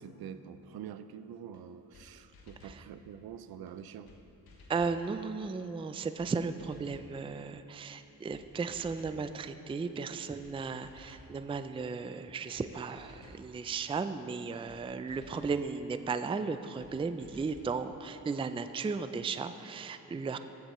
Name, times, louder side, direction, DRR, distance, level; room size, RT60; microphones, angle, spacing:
voice 1, 0.0-4.1, right 8 dB, 90° right, 12 dB, 0.5 m, -46 dB
sound 1, 1.5-1.6 1.9-2.1 2.3-2.8 3.7-3.8 4.1-4.2 4.5-5.0 5.8-5.9 6.2-6.3 6.6-7.1 7.9-8.0 8.3-8.4 8.7-9.2 10.0-10.1 10.4-10.6 10.8-11.3 12.2-12.3 12.5-12.7 13.0-13.4 14.3-14.4 14.7-14.8 15.1-15.6 16.4-16.5 16.8-16.9 17.2-17.7, left 3 dB, 85° left, 1.2 m, -56 dB
voice 2, 4.7-20.4, right 4 dB, 15° right, 10 dB, 0.4 m, -35 dB
14.5 x 8.2 x 3.1 m, 3.0 s
cardioid pair, 60°, 36 cm